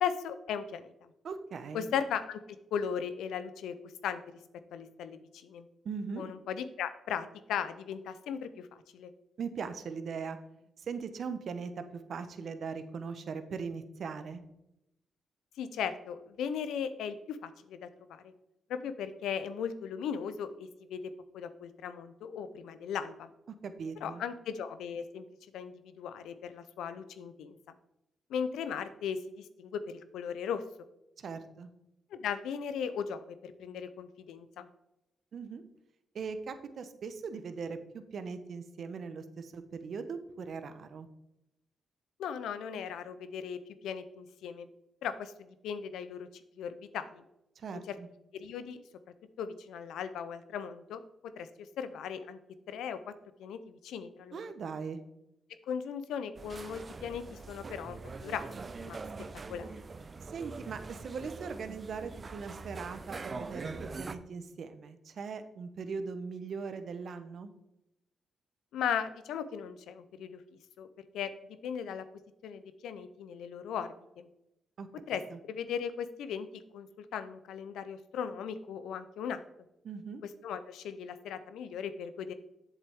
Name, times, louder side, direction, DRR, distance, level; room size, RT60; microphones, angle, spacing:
voice 1, 0.0-1.1 1.7-2.4 2.7-4.2 4.7-5.7 6.2-9.1 15.6-18.3 18.7-23.3 24.0-25.3 25.5-27.6 28.3-30.6 32.1-34.7 42.2-44.7 45.0-46.3 46.6-47.2 47.7-48.0 48.3-48.8 49.4-51.0 51.4-52.4 52.7-53.1 53.4-54.4 55.7-58.5 58.8-59.0 59.5-59.7 68.7-70.4 70.8-70.9 71.1-71.3 71.6-72.0 72.4-73.9 74.2-74.3 75.1-75.2 75.5-79.4 80.4-82.3, left 7 dB, 85° left, 12 dB, 0.6 m, -37 dB
voice 2, 1.2-1.9 5.8-6.3 9.4-10.4 10.8-14.4 23.6-24.2 31.2-31.7 35.3-35.6 36.1-41.1 47.6-48.1 54.3-55.0 60.2-67.5 74.8-74.9 75.3-75.4 79.8-80.2, right 5 dB, 65° right, 10 dB, 0.9 m, -40 dB
sound 1, 56.3-64.1, right 4 dB, 45° right, 0.6 m, -43 dB
8.0 x 7.3 x 3.6 m, 0.86 s
supercardioid pair, 50°, 0 cm